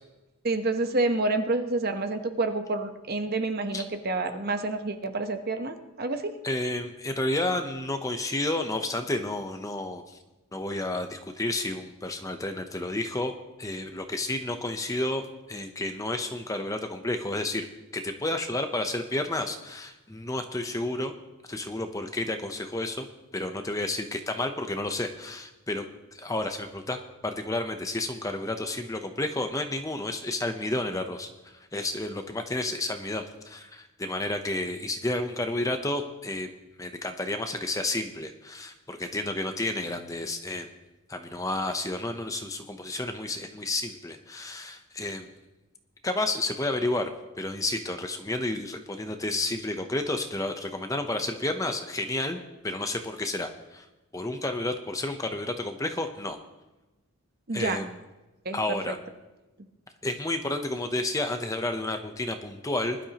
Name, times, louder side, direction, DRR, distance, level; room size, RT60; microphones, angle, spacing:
voice 1, 0.4-6.3 57.5-57.8 58.4-58.9, right 2 dB, 45° right, 7 dB, 1.0 m, -28 dB
voice 2, 6.4-10.2 10.5-13.3 13.6-17.7 17.9-21.1 21.5-23.1 23.3-25.8 26.1-27.0 27.2-36.5 36.8-40.7 41.1-45.3 46.0-47.1 47.4-52.4 52.6-53.9 54.1-56.4 57.5-57.9 58.5-59.0 60.0-63.0, left 2 dB, 15° left, 6 dB, 0.7 m, -31 dB
20.0 x 11.5 x 3.0 m, 1.1 s
head